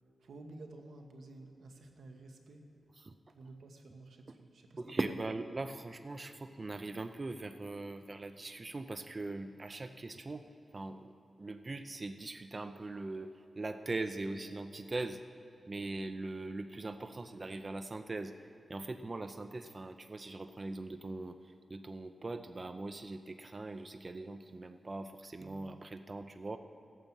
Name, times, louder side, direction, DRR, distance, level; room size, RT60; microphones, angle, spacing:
voice 1, 0.2-2.7 3.3-5.0, right 2 dB, 85° right, 4 dB, 1.2 m, -52 dB
voice 2, 4.8-10.4 10.7-11.1 11.4-15.2 15.7-18.3 18.7-21.4 21.7-26.6, right 2 dB, 35° right, 9 dB, 0.5 m, -41 dB
14.5 x 9.1 x 7.4 m, 2.9 s
wide cardioid pair, 85°, 0 cm